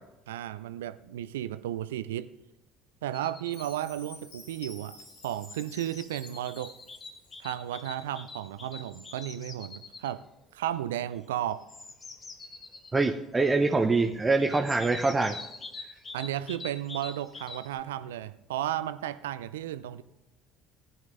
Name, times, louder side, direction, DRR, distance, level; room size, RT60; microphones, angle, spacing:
voice 1, 0.3-2.3 3.0-5.0 5.2-6.7 7.4-10.2 10.5-11.6 16.1-20.0, right 12 dB, 75° right, 14 dB, 0.4 m, -34 dB
sound 1, 3.1-3.8 4.9-10.1 11.5-13.0 14.4-17.8, left 3 dB, 30° left, 1.3 m, -45 dB
Chime, 3.5-7.6, left 2 dB, 75° left, 3.8 m, -52 dB
voice 2, 12.9-15.4, right 3 dB, 20° right, 4 dB, 0.7 m, -24 dB
19.0 x 10.5 x 2.6 m, 0.94 s
figure-of-eight pair, 60°, 0 cm